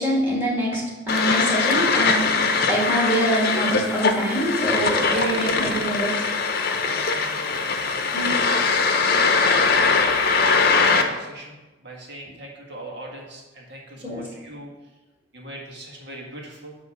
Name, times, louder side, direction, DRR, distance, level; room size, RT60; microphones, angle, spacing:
voice 1, 0.0-6.1 8.1-8.4 14.0-14.2, right 1 dB, 10° right, -4 dB, 2.2 m, -25 dB
sound 1, 1.1-11.0, left 4 dB, 55° left, 0.7 m, -21 dB
voice 2, 5.1-5.8 6.7-9.0 9.4-14.7 15.3-16.8, right 1 dB, 65° right, -1 dB, 1.7 m, -38 dB
9.2 x 3.1 x 6.2 m, 1.1 s
head